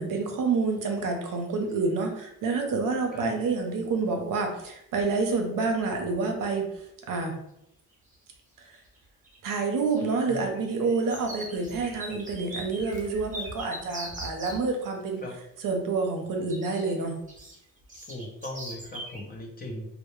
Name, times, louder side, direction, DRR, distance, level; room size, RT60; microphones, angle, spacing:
voice 1, 0.0-6.7 7.1-7.4 9.4-15.2 15.6-17.2, right 4 dB, 65° right, 3 dB, 0.6 m, -28 dB
sound 1, 0.8-1.0 1.3-1.9 3.9-4.0 4.6-4.7 5.0-5.3 5.6-6.2 6.7-6.8 7.9-8.4 8.6-14.6 16.5-19.2, right 1 dB, 20° right, 0.7 m, -42 dB
voice 2, 18.1-19.9, left 1 dB, 25° left, 0 dB, 0.6 m, -38 dB
2.1 x 2.1 x 3.0 m, 0.80 s
cardioid pair, 90°, 34 cm